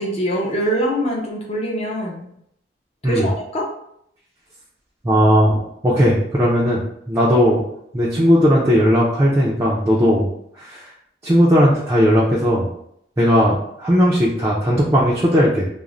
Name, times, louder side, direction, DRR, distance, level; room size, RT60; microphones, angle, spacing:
voice 1, 0.0-2.3 3.0-3.7, right 1 dB, 35° left, -1 dB, 0.5 m, -23 dB
voice 2, 5.0-5.6 5.8-6.8 7.1-7.6 7.9-10.3 10.6-10.8 11.2-12.7 13.2-15.7, equal, 15° right, -6 dB, 0.4 m, -16 dB
2.4 x 2.0 x 3.0 m, 0.73 s
head